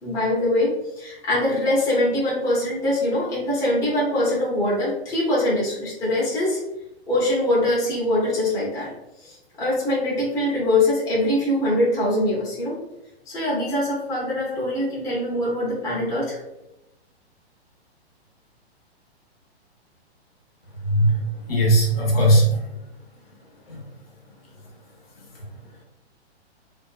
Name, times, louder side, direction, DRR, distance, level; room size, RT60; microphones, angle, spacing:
voice 1, 0.0-6.6 7.1-8.9 9.2-12.8 13.3-16.4, left 1 dB, 10° left, -8 dB, 0.6 m, -23 dB
voice 2, 20.8-21.2 21.5-22.8 23.7-23.8, right 1 dB, 60° left, -1 dB, 0.9 m, -18 dB
2.5 x 2.1 x 2.3 m, 0.88 s
hypercardioid pair, 130°, 33 cm